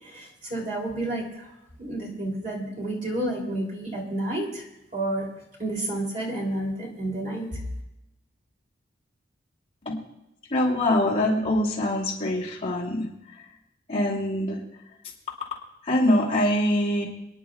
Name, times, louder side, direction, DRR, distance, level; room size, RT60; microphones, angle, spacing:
voice 1, 0.0-1.5 1.8-4.7 4.9-5.3 5.6-7.6, right 1 dB, 40° right, -2 dB, 3.1 m, -30 dB
voice 2, 10.5-13.1 13.9-14.6 15.9-17.0, left 1 dB, 30° left, -4 dB, 2.7 m, -24 dB
28.0 x 10.5 x 2.4 m, 0.92 s
head